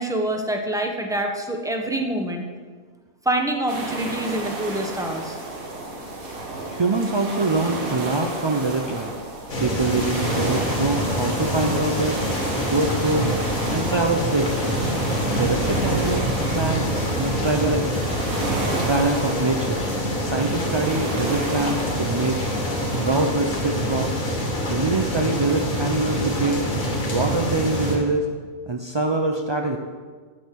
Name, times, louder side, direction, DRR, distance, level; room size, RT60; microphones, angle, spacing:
voice 1, 0.0-2.4 3.2-5.4, right 1 dB, 5° right, 3 dB, 0.9 m, -26 dB
sound 1, 3.7-23.3, right 2 dB, 90° right, 2.1 m, -32 dB
voice 2, 6.7-9.1 9.6-12.2 12.7-13.3 13.7-14.8 15.3-16.9 17.1-17.9 18.8-19.8 20.2-22.4 22.9-24.2 24.7-26.6 27.0-28.3 28.7-29.8, right 3 dB, 40° right, 3 dB, 0.3 m, -24 dB
sound 2, 9.5-28.0, equal, 80° left, 2.5 m, -26 dB
9.8 x 6.4 x 8.3 m, 1.5 s
omnidirectional pair, 1.4 m